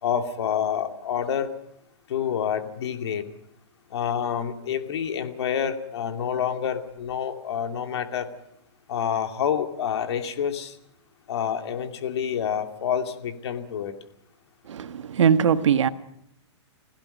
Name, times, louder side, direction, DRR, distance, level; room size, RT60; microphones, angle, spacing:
voice 1, 0.0-1.5 2.1-3.2 3.9-8.3 8.9-10.7 11.3-13.9, left 8 dB, 60° left, 2.6 m, -28 dB
voice 2, 14.7-15.9, right 7 dB, 85° right, 1.5 m, -21 dB
29.5 x 16.5 x 5.5 m
hypercardioid pair, 160°, 15 cm